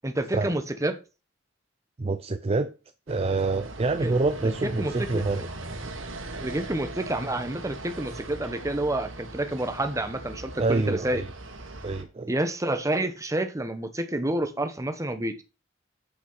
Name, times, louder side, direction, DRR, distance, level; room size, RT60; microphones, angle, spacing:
voice 1, 0.0-1.0 4.0-4.1 4.4-5.2 6.4-11.2 12.3-15.4, right 1 dB, 15° right, 1.1 m, -29 dB
voice 2, 2.0-2.7 3.1-5.5 10.6-11.3 11.8-12.3, right 3 dB, 30° right, 0.5 m, -26 dB
sound 1, 3.1-12.0, right 2 dB, 80° right, 1.8 m, -39 dB
8.2 x 5.9 x 5.6 m
head